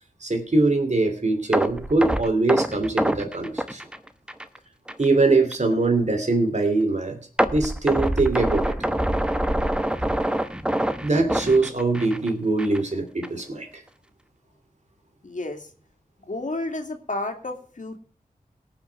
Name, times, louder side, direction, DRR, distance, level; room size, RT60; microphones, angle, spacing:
voice 1, 0.2-3.8 5.0-7.2 7.5-8.8 11.0-13.7, right 3 dB, 50° right, 5 dB, 2.8 m, -22 dB
sound 1, 1.5-4.6 4.9-5.0 5.5-5.6 7.4-12.3 12.6-12.8 13.2-13.3, right 1 dB, 5° right, 1.0 m, -25 dB
voice 2, 15.2-15.7 16.3-18.0, left 2 dB, 60° left, 5 dB, 2.4 m, -31 dB
18.0 x 6.1 x 5.9 m, 0.42 s
cardioid pair, 45°, 15 cm